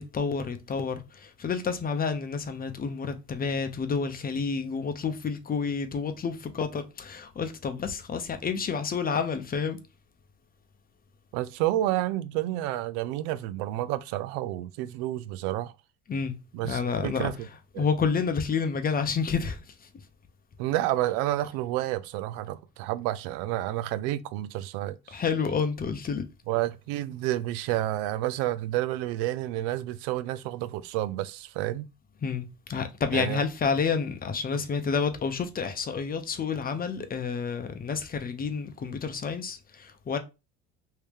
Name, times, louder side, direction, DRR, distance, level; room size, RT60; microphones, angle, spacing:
voice 1, 0.0-9.8 16.1-16.4 16.6-17.3 17.8-19.6 25.1-26.3 32.2-40.2, left 5 dB, 30° left, 0.7 m, -29 dB
voice 2, 11.3-15.7 16.5-17.3 17.7-17.8 20.6-25.2 26.5-31.9 33.1-33.4 34.5-34.6, right 14 dB, 75° right, 0.5 m, -30 dB
3.1 x 2.8 x 3.4 m
supercardioid pair, 85°, 31 cm